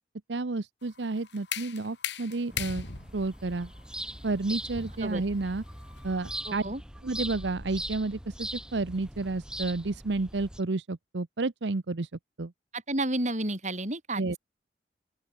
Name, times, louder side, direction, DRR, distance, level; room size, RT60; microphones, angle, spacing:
voice 1, 0.3-2.9 3.1-3.7 4.2-5.6 6.0-6.6 7.0-12.1 12.4-12.5 14.2-14.4, right 3 dB, 85° right, 0.8 m, -31 dB
sound 1, 0.8-6.6, left 8 dB, 80° left, 2.6 m, -40 dB
sound 2, 2.5-10.6, right 1 dB, 5° right, 2.5 m, -41 dB
voice 2, 6.5-6.8 12.7-14.4, right 1 dB, 40° right, 5.9 m, -31 dB
open air
head